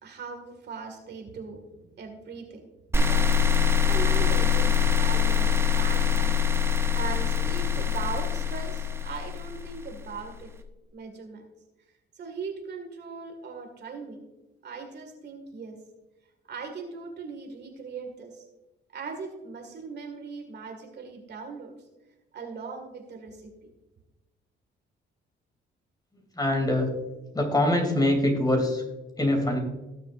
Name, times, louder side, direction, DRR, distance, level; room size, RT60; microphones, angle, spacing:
voice 1, 0.0-6.4 6.9-10.5 10.9-11.5 12.2-14.2 14.6-15.8 16.5-18.3 18.9-21.7 22.3-23.7, right 5 dB, 55° right, 3 dB, 2.1 m, -39 dB
sound 1, 2.9-10.1, left 7 dB, 10° right, 0.7 m, -24 dB
voice 2, 26.4-26.9 27.3-28.8 29.2-29.6, left 1 dB, 20° left, 3 dB, 3.0 m, -23 dB
18.0 x 7.0 x 2.6 m, 1.0 s
cardioid pair, 90°, 20 cm